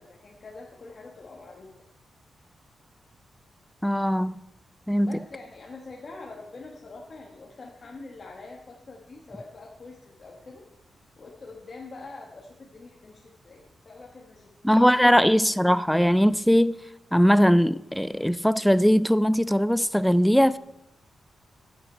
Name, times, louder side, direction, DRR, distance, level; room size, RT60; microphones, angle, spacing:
voice 1, 0.0-1.7 5.1-10.6 10.9-14.9, left 3 dB, 35° left, 1.4 m, -45 dB
voice 2, 3.8-4.3 4.9-5.2 14.6-16.8 17.1-20.6, equal, ahead, 0.3 m, -20 dB
14.5 x 8.1 x 4.4 m
wide cardioid pair, 160°, 0 cm